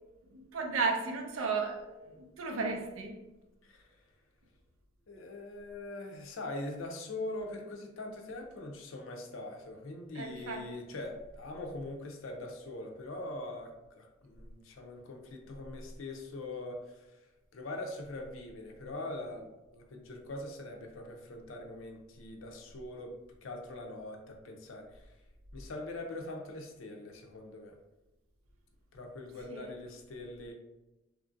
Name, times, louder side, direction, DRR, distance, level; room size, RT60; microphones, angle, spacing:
voice 1, 0.3-3.2 10.1-10.6 29.5-29.7, right 4 dB, 80° right, 0.5 m, -34 dB
voice 2, 5.1-17.3 17.5-25.1 25.5-27.8 28.9-30.5, left 2 dB, 75° left, 0.5 m, -42 dB
2.9 x 2.5 x 2.5 m
head